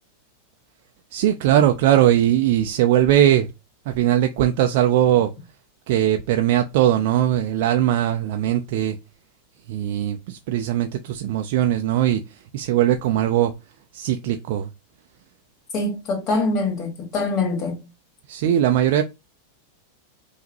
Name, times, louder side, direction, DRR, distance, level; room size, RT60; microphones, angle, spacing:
voice 1, 1.1-3.5 3.9-5.3 5.9-8.9 9.7-12.2 12.5-13.5 13.9-14.7 18.3-19.0, right 11 dB, 50° right, 0.4 m, -20 dB
voice 2, 15.7-17.8, left 3 dB, 35° left, 1.8 m, -24 dB
5.6 x 2.8 x 2.8 m
figure-of-eight pair, 90°, 0 cm